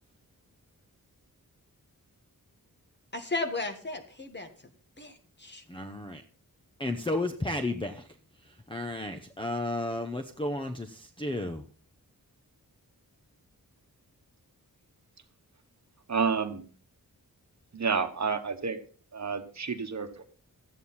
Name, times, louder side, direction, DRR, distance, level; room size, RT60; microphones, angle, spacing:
voice 1, 3.1-4.5 5.0-5.6, left 2 dB, 30° left, 6 dB, 1.6 m, -35 dB
voice 2, 5.7-6.2 6.8-8.1 8.7-11.6, left 2 dB, 15° left, 6 dB, 0.8 m, -33 dB
voice 3, 16.1-16.6 17.7-18.8 19.1-20.2, right 5 dB, 50° right, 7 dB, 1.2 m, -30 dB
13.0 x 9.1 x 4.2 m, 0.41 s
wide cardioid pair, 120°, 35 cm